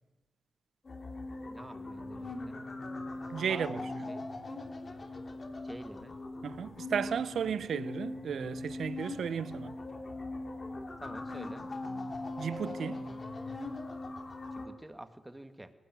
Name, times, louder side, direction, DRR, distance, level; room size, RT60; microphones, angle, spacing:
sound 1, 0.8-14.7, left 2 dB, 45° left, 3.0 m, -40 dB
voice 1, 1.5-2.6 3.5-4.3 5.6-6.2 11.0-11.7 14.5-15.7, right 1 dB, 15° right, 1.9 m, -48 dB
voice 2, 3.3-3.8 6.4-9.7 12.4-13.0, right 7 dB, 75° right, 0.6 m, -34 dB
19.0 x 15.0 x 9.3 m
supercardioid pair, 50°, 0 cm